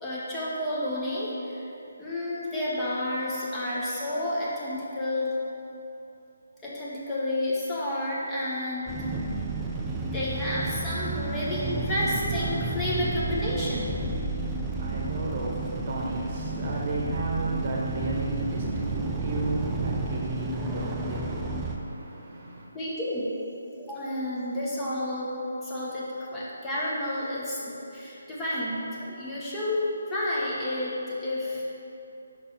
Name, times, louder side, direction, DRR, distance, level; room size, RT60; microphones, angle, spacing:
voice 1, 0.0-1.6 2.0-5.3 6.6-9.1 10.0-14.0 22.7-23.3 23.8-25.4 25.6-31.6, left 1 dB, 15° left, -8 dB, 1.0 m, -30 dB
sound 1, 8.9-21.8, right 2 dB, 15° right, 0.5 m, -31 dB
voice 2, 14.4-22.7, right 2 dB, 40° right, -3 dB, 1.0 m, -33 dB
5.2 x 3.9 x 5.5 m, 2.8 s
figure-of-eight pair, 150°, 0 cm